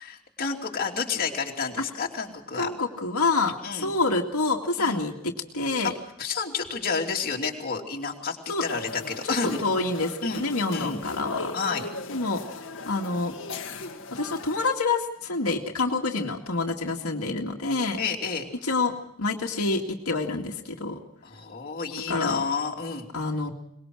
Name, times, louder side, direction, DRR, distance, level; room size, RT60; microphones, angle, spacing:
voice 1, 0.0-2.7 3.6-4.0 4.8-5.1 5.8-5.9 6.2-9.6 10.2-11.0 11.5-11.9 18.0-18.5 21.2-23.0, left 5 dB, 45° left, 0 dB, 3.0 m, -30 dB
voice 2, 2.5-5.9 8.5-8.6 9.2-9.3 9.6-11.5 12.1-12.4 12.9-13.3 14.1-18.0 18.6-21.0 22.1-22.4 23.1-23.5, left 3 dB, 80° left, 1 dB, 2.2 m, -27 dB
sound 1, 8.7-14.7, left 3 dB, 60° left, 2.0 m, -38 dB
23.5 x 21.0 x 6.3 m, 0.73 s
head